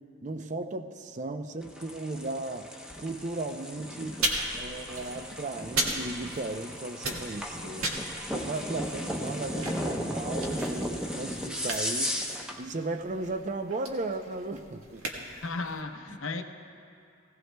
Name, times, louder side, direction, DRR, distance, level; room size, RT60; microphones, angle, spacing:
voice 1, 0.2-2.7 3.0-4.3 4.5-7.9 8.3-12.2 12.6-15.0 16.1-16.2, right 2 dB, 35° right, 7 dB, 0.6 m, -36 dB
sound 1, 1.6-12.6, equal, 5° right, 0.8 m, -35 dB
sound 2, 4.2-6.7 6.9-15.8, right 2 dB, 90° right, 1.6 m, -36 dB
voice 2, 15.3-16.4, left 3 dB, 70° left, 6 dB, 0.8 m, -35 dB
19.5 x 17.0 x 2.3 m, 2.4 s
head